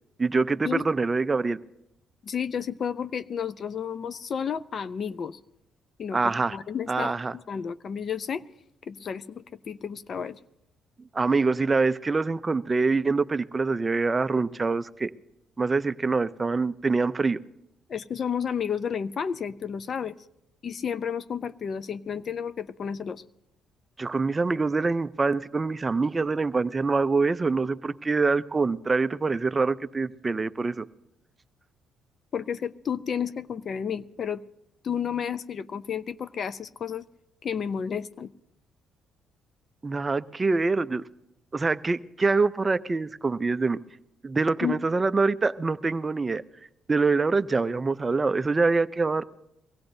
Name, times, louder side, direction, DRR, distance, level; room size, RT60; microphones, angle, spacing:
voice 1, 0.2-1.6 6.1-6.6 6.9-7.3 11.1-15.1 15.6-17.4 24.0-30.9 39.8-41.0 41.5-43.8 44.2-46.4 46.9-49.2, right 4 dB, 25° right, 14 dB, 0.4 m, -25 dB
voice 2, 2.2-5.4 6.0-8.4 8.9-10.4 17.9-20.2 20.6-23.2 32.3-34.4 34.8-37.0 37.4-38.3 44.6-44.8, left 7 dB, 50° left, 14 dB, 0.4 m, -31 dB
23.0 x 16.0 x 2.6 m, 0.84 s
cardioid pair, 85°, 0 cm